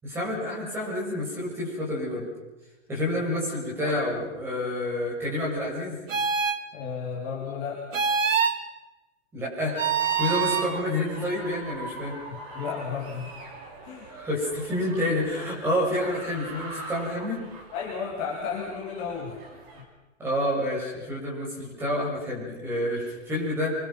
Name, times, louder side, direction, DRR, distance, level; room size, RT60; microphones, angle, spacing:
voice 1, 0.0-2.3 2.9-6.0 9.3-9.8 10.1-12.2 14.1-17.4 20.2-23.8, left 1 dB, 5° right, -6 dB, 7.6 m, -28 dB
sound 1, 6.1-6.6 7.9-8.6 9.8-10.7, right 6 dB, 90° right, 2.4 m, -24 dB
voice 2, 6.7-7.8 10.5-10.6 12.3-13.3 13.8-14.1 17.7-19.4, left 6 dB, 20° left, -3 dB, 3.0 m, -33 dB
sound 2, 10.0-19.8, right 2 dB, 30° right, 5.3 m, -42 dB
28.0 x 25.0 x 6.1 m, 1.1 s
hypercardioid pair, 175°, 37 cm